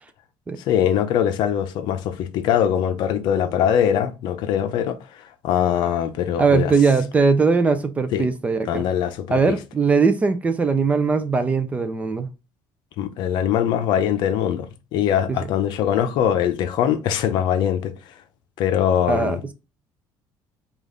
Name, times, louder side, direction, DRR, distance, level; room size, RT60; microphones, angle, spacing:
voice 1, 0.7-5.0 5.4-6.7 8.1-8.3 8.7-9.3 13.0-14.7 14.9-17.9 18.6-19.5, left 9 dB, 60° left, 0.6 m, -22 dB
voice 2, 6.4-8.8 9.3-12.3 15.3-15.4 19.1-19.5, right 4 dB, 15° right, 0.4 m, -20 dB
5.2 x 2.4 x 3.7 m
cardioid pair, 165°, 9 cm